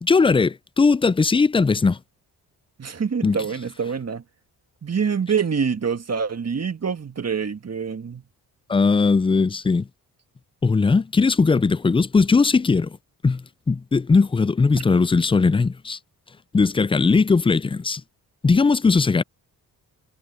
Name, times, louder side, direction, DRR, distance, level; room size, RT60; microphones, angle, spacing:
voice 1, 0.0-2.0 3.2-3.4 8.7-9.9 10.6-13.0 13.2-16.0 16.5-18.0 18.4-19.2, left 4 dB, 15° left, 0.4 m, -19 dB
voice 2, 2.8-4.2 4.8-8.2, right 6 dB, 40° right, 1.9 m, -25 dB
cardioid pair, 65°, 40 cm